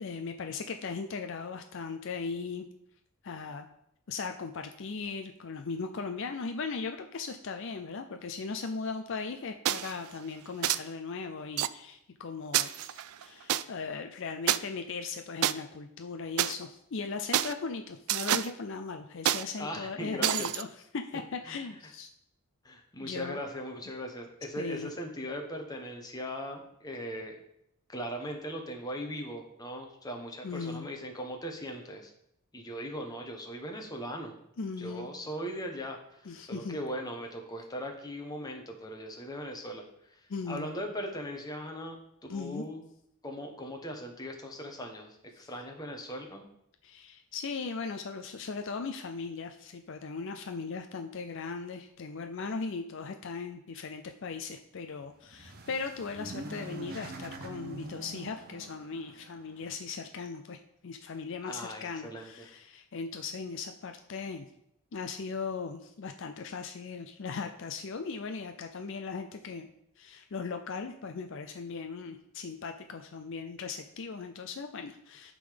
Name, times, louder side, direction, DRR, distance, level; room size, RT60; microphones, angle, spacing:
voice 1, 0.0-2.7 3.2-3.7 4.1-20.7 20.9-22.1 23.0-23.4 24.6-24.9 30.4-30.9 34.6-35.1 36.3-36.8 40.3-40.7 42.3-42.6 45.4-45.5 46.8-64.5 64.9-69.7 70.0-75.3, left 4 dB, 60° left, 6 dB, 0.5 m, -38 dB
sound 1, 9.7-10.0 10.6-10.8 11.6-11.7 12.5-13.6 14.5-14.6 15.4-15.5 16.4-16.5 17.3-17.5 18.1-18.5 19.3-19.4 20.2-20.6, right 12 dB, 75° right, 0.3 m, -28 dB
voice 2, 19.5-20.5 21.5-21.6 22.6-27.4 27.9-32.1 32.5-34.4 34.8-42.0 42.3-42.8 43.2-46.5 61.4-62.5, equal, 15° left, 2 dB, 1.1 m, -39 dB
sound 2, 55.1-59.8, right 2 dB, 40° right, 0.9 m, -44 dB
11.5 x 3.8 x 5.1 m, 0.77 s
head